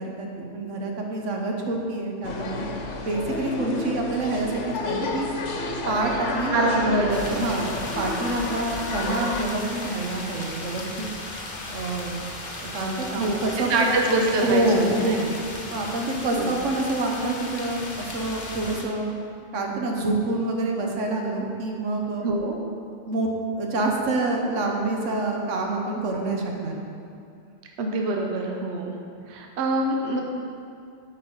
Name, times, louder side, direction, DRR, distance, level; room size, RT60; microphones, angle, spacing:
voice 1, 0.0-2.6 3.0-4.5 4.8-5.3 5.9-6.6 6.9-7.7 8.0-11.1 11.7-12.2 12.6-13.9 14.4-15.3 15.7-19.1 19.5-22.3 23.1-23.3 23.6-26.8, right 2 dB, 85° right, 1 dB, 1.3 m, -27 dB
sound 1, 2.2-9.4, left 3 dB, 75° left, 1.1 m, -31 dB
voice 2, 6.5-7.4 13.1-15.1 16.4-16.5 22.2-22.6 27.8-28.9 29.3-30.2, right 2 dB, 65° right, 1 dB, 1.0 m, -25 dB
sound 2, 7.1-18.8, left 2 dB, 45° left, 0.9 m, -36 dB
8.5 x 4.7 x 5.3 m, 2.4 s
omnidirectional pair, 1.2 m